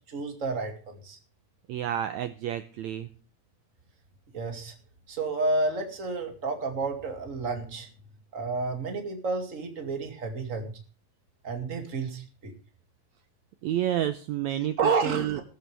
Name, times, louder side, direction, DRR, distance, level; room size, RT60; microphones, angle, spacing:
voice 1, 0.1-1.2 4.3-4.7 5.1-7.9 8.3-10.7 11.4-12.5 14.8-15.4, right 3 dB, 25° right, 4 dB, 2.2 m, -30 dB
voice 2, 1.7-3.1 13.6-14.8 15.0-15.4, right 11 dB, 85° right, 10 dB, 1.6 m, -29 dB
15.0 x 14.0 x 3.4 m, 0.38 s
omnidirectional pair, 4.1 m